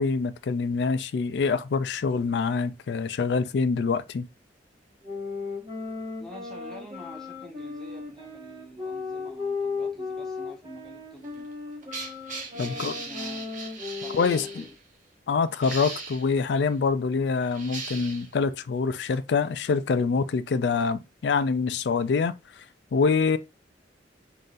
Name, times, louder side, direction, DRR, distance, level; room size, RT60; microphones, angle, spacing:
voice 1, 0.0-4.3 12.6-12.9 14.2-14.4 15.3-22.3 22.9-23.4, left 5 dB, 70° left, 0.4 m, -25 dB
sound 1, 5.0-14.7, left 4 dB, 25° right, 1.4 m, -36 dB
voice 2, 6.2-11.5 12.5-13.5 13.9-14.7, left 1 dB, 5° left, 0.9 m, -47 dB
sound 2, 11.2-14.7 15.5-16.3 17.3-18.3 19.1-19.2, right 4 dB, 45° right, 1.1 m, -38 dB
3.9 x 3.9 x 2.5 m
head